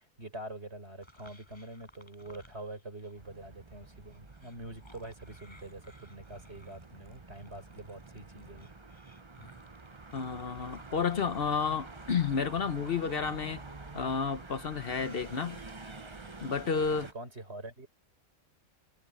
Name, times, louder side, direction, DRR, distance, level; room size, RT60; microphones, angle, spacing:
voice 1, 0.0-8.7 17.0-17.9, right 2 dB, 60° right, 5.7 m, -45 dB
sound 1, 1.0-3.2 3.5-14.1 14.6-16.6, equal, 20° left, 7.4 m, -59 dB
sound 2, 3.2-17.1, right 3 dB, 25° right, 1.1 m, -48 dB
voice 2, 10.1-13.6 13.9-15.6 16.4-17.1, left 6 dB, 55° left, 1.0 m, -31 dB
omnidirectional pair, 1.2 m